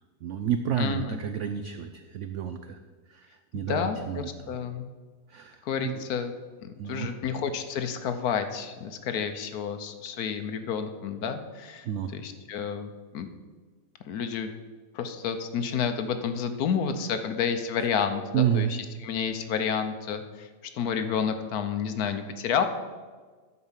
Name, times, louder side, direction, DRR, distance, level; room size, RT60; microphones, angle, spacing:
voice 1, 0.2-2.8 3.1-4.3 5.3-6.0 6.8-7.1 11.8-12.1 18.3-18.7, right 9 dB, 85° right, 8 dB, 0.6 m, -30 dB
voice 2, 0.8-1.2 3.5-4.9 5.6-6.3 6.6-13.3 14.1-14.5 14.9-20.5 20.7-22.6, left 7 dB, 65° left, 8 dB, 1.1 m, -30 dB
11.0 x 4.8 x 7.3 m, 1.4 s
omnidirectional pair, 1.9 m